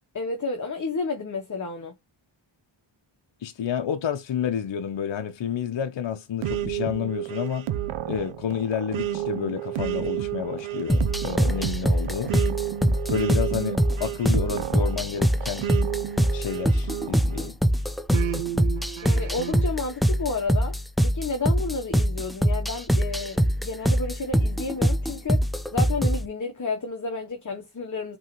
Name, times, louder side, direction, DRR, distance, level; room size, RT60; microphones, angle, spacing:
voice 1, 0.1-1.9 19.0-20.8 21.0-25.4 25.7-28.2, left 3 dB, 40° left, 1.0 m, -31 dB
voice 2, 3.4-7.7 8.1-12.3 13.1-15.7 16.3-17.6, left 8 dB, 65° left, 0.8 m, -30 dB
sound 1, 6.4-17.5 18.1-19.7, right 11 dB, 85° right, 0.6 m, -31 dB
sound 2, 10.9-26.3, equal, ahead, 0.4 m, -24 dB
5.4 x 3.2 x 3.0 m
wide cardioid pair, 85°, 48 cm